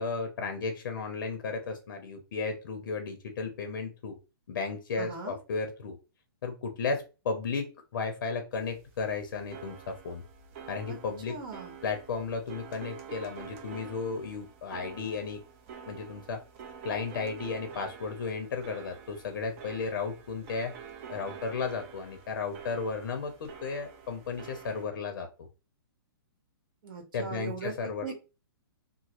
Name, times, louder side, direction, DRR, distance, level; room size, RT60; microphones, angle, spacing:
voice 1, 0.0-4.2 4.5-6.0 6.4-10.2 10.7-11.4 11.8-15.4 15.9-16.4 16.8-20.8 21.1-25.5 27.1-28.1, left 4 dB, 65° left, 6 dB, 0.6 m, -34 dB
voice 2, 5.0-5.3 10.9-11.0 11.3-11.8 26.8-27.7 28.0-28.1, right 5 dB, 60° right, 1 dB, 1.3 m, -39 dB
sound 1, 8.5-24.8, right 7 dB, 35° right, 0.6 m, -48 dB
3.0 x 2.0 x 2.9 m, 0.30 s
hypercardioid pair, 150°, 12 cm